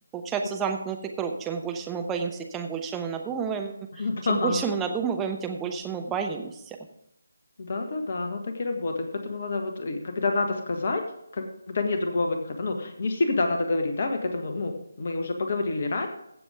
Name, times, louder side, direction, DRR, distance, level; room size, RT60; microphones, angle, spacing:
voice 1, 0.1-6.8, right 6 dB, 10° right, 3 dB, 0.9 m, -30 dB
voice 2, 3.9-4.6 7.6-11.0 11.3-16.1, left 3 dB, 40° left, 5 dB, 1.6 m, -28 dB
15.5 x 7.3 x 3.6 m, 0.77 s
figure-of-eight pair, 155°, 0 cm